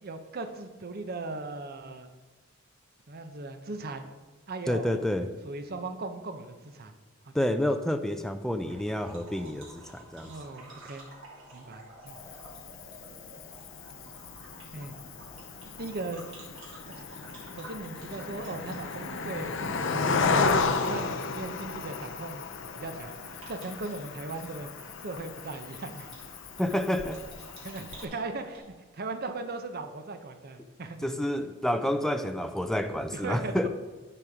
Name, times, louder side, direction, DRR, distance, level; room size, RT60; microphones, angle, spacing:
voice 1, 0.0-2.1 3.1-4.1 4.5-5.0 5.4-6.9 7.2-7.5 10.3-11.1 11.5-12.2 14.7-14.9 15.8-16.2 16.9-17.0 17.5-22.5 22.7-24.7 25.0-26.1 27.1-27.2 27.6-31.1 33.1-33.7, right 3 dB, 50° right, 8 dB, 0.7 m, -38 dB
voice 2, 4.7-5.3 7.3-10.3 26.6-27.2 31.0-33.7, left 1 dB, ahead, 8 dB, 0.4 m, -29 dB
sound 1, 8.6-28.6, right 1 dB, 65° right, 2.7 m, -51 dB
Cricket, 12.1-28.1, left 4 dB, 65° left, 0.6 m, -34 dB
10.0 x 4.4 x 5.0 m, 1.4 s
head